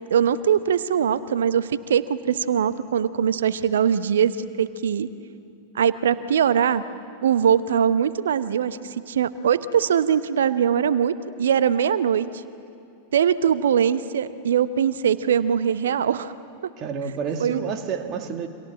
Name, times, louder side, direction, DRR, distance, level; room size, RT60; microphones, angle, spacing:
voice 1, 0.1-5.1 5.7-6.8 7.2-8.8 9.1-12.3 13.1-16.3 16.6-16.7 17.4-17.6, right 8 dB, 65° right, 14 dB, 1.0 m, -21 dB
voice 2, 16.8-18.5, right 6 dB, 35° right, 5 dB, 2.2 m, -29 dB
29.5 x 26.5 x 7.5 m, 2.5 s
figure-of-eight pair, 90°, 0 cm